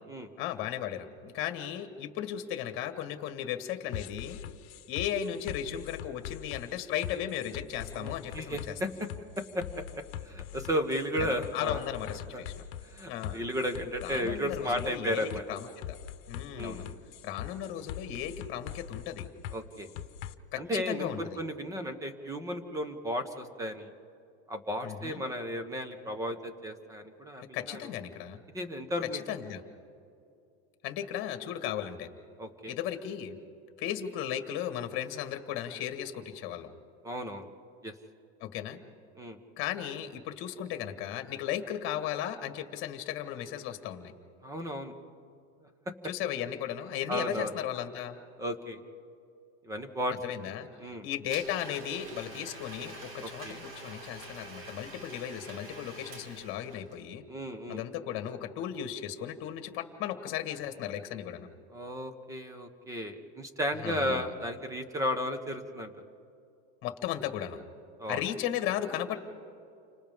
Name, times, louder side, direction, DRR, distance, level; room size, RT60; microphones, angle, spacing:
voice 1, 0.4-4.4 4.9-8.7 11.5-12.5 13.1-13.4 14.0-16.0 16.3-16.8 17.2-19.3 20.5-21.4 24.8-25.2 27.4-28.4 29.1-29.6 30.8-32.1 32.7-33.4 33.8-36.7 38.4-38.8 39.6-44.1 46.0-48.2 50.2-50.7 51.0-57.2 57.7-61.5 63.8-64.3 66.8-67.6 68.1-69.2, left 10 dB, 35° left, 7 dB, 1.7 m, -36 dB
sound 1, 3.9-20.3, left 11 dB, 65° left, 1.1 m, -42 dB
voice 2, 7.9-8.9 9.5-9.8 10.2-11.8 12.3-12.4 12.8-15.4 16.6-17.0 19.5-19.9 20.6-23.9 24.5-27.9 28.5-29.2 32.4-32.7 37.0-37.5 37.8-37.9 39.2-39.4 44.4-44.9 47.1-47.5 48.4-48.8 49.6-50.1 50.8-51.1 53.2-53.6 57.3-57.8 61.7-65.9 68.0-68.2, equal, 10° right, 8 dB, 1.2 m, -34 dB
Domestic sounds home sounds, 51.3-57.0, right 1 dB, 40° right, 2.5 m, -46 dB
30.0 x 26.0 x 3.7 m, 2.5 s
supercardioid pair, 160°, 34 cm